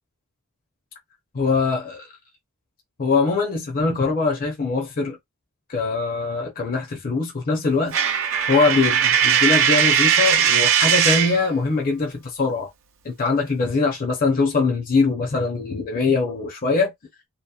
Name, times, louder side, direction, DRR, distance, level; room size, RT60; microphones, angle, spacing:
voice 1, 1.3-2.1 3.0-5.2 5.7-8.0 8.5-12.7 13.0-16.9, left 4 dB, 40° left, 0.6 m, -22 dB
Coin (dropping), 7.9-11.4, right 8 dB, 60° right, 0.5 m, -19 dB
2.8 x 2.0 x 2.3 m
head